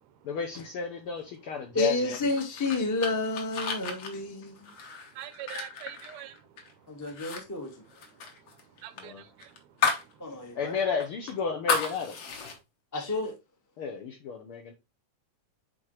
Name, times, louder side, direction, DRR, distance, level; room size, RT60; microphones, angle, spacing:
voice 1, 0.2-2.2 9.0-9.2 10.5-12.2 13.8-14.7, left 6 dB, 80° left, 1.2 m, -32 dB
voice 2, 1.7-4.7 6.9-7.7 10.2-10.7 12.9-13.4, left 2 dB, 25° left, 0.3 m, -30 dB
sound 1, 2.1-6.7 7.1-7.4 7.7-10.1 10.5-10.6 11.0-12.6, left 5 dB, 55° left, 1.9 m, -33 dB
voice 3, 4.4-10.5 12.5-12.6, right 12 dB, 75° right, 1.7 m, -48 dB
9.1 x 3.8 x 3.1 m
omnidirectional pair, 3.5 m